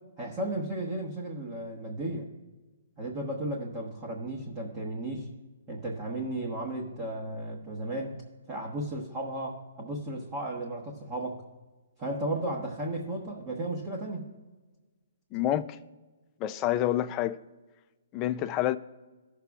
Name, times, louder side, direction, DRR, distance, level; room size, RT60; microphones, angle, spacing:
voice 1, 0.2-2.3 3.0-5.3 5.7-8.2 8.5-11.4 12.0-14.3, right 1 dB, 30° right, 1.2 m, -34 dB
voice 2, 15.3-15.8 16.4-17.4 18.1-18.8, left 13 dB, 25° left, 0.4 m, -28 dB
17.5 x 6.7 x 2.4 m
hypercardioid pair, 150°, 0 cm